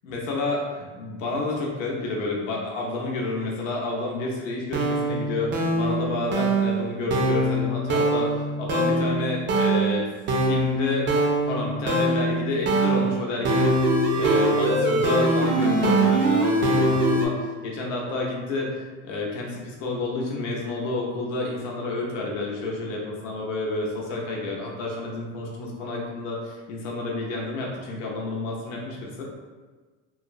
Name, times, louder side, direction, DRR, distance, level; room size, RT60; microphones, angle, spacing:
voice 1, 0.0-8.3 8.6-10.1 10.4-11.1 11.5-29.2, left 2 dB, 90° left, -2 dB, 0.7 m, -30 dB
sound 1, 4.7-17.3, right 1 dB, 35° right, 0.4 m, -23 dB
3.0 x 2.0 x 2.4 m, 1.3 s
supercardioid pair, 105°, 37 cm